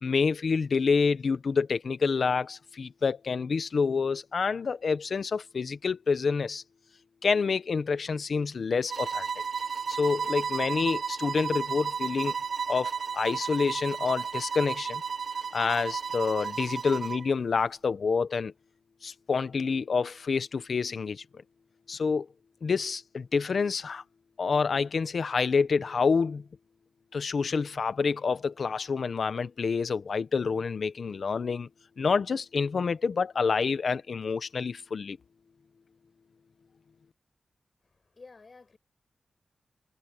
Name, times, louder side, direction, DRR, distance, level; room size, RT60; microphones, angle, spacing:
voice 1, 0.0-6.6 7.2-9.3 9.9-12.3 12.7-15.0 15.5-18.5 19.0-21.2 21.9-22.3 22.6-24.0 24.4-26.4 27.1-31.7 32.0-35.2, left 5 dB, 60° left, 1.0 m, -28 dB
sound 1, 8.9-17.3, right 6 dB, 55° right, 1.1 m, -33 dB
voice 2, 37.9-38.8, left 4 dB, 40° left, 7.8 m, -52 dB
wide cardioid pair, 160°, 0 cm